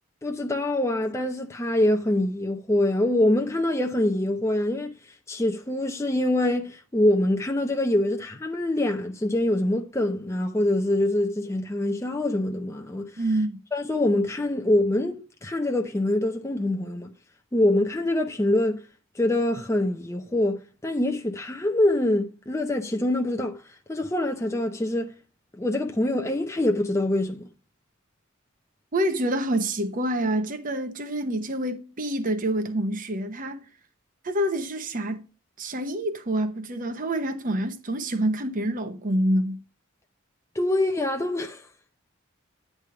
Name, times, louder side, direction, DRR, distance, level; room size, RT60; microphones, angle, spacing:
voice 1, 0.2-13.2 13.7-17.1 17.5-18.8 19.1-25.1 25.5-27.5 40.5-41.7, left 1 dB, 15° left, 0.6 m, -25 dB
voice 2, 13.2-13.6 28.9-33.6 34.2-35.2 35.6-39.6, right 1 dB, 40° right, 0.9 m, -27 dB
9.8 x 3.4 x 5.6 m
head